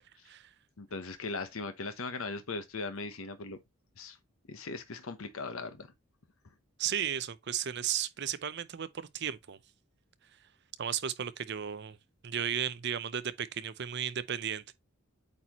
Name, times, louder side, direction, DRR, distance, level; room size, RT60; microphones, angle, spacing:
voice 1, 0.8-3.6 4.0-4.2 4.5-5.9, left 3 dB, 90° left, 0.9 m, -39 dB
voice 2, 6.8-9.6 10.8-12.0 12.2-14.7, right 9 dB, 55° right, 0.6 m, -34 dB
8.5 x 4.2 x 3.0 m
head